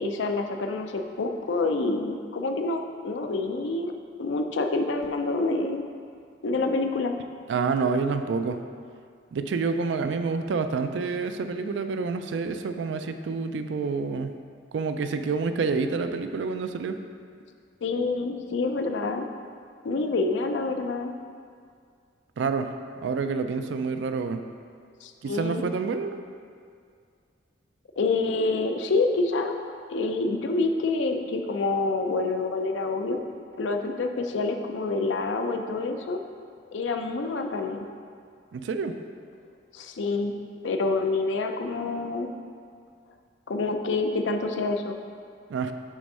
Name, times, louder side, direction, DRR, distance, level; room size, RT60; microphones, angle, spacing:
voice 1, 0.0-3.9 4.2-5.8 6.4-7.1 17.8-19.3 19.8-21.1 25.0-25.6 28.0-29.5 29.9-33.2 33.6-36.2 36.7-37.9 39.7-40.3 40.6-42.3 43.5-45.0, left 3 dB, 90° left, 5 dB, 0.5 m, -27 dB
voice 2, 7.5-8.6 9.3-14.3 14.7-17.0 22.4-22.7 23.0-24.4 25.2-26.2 38.5-38.9 45.5-45.7, right 4 dB, 75° right, 8 dB, 0.4 m, -28 dB
6.3 x 3.5 x 5.4 m, 2.2 s
head